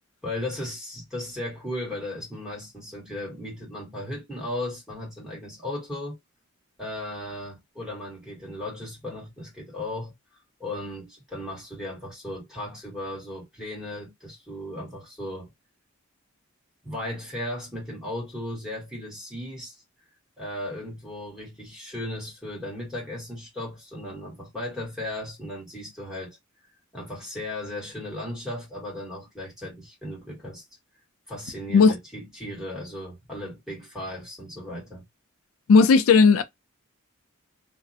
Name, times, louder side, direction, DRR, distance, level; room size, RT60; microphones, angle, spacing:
voice 1, 0.2-6.2 6.8-10.1 10.6-15.5 16.8-19.8 20.4-26.4 26.9-30.6 31.3-35.0, left 1 dB, 5° right, 1.2 m, -36 dB
voice 2, 35.7-36.4, left 4 dB, 75° left, 0.4 m, -15 dB
2.4 x 2.1 x 2.6 m
head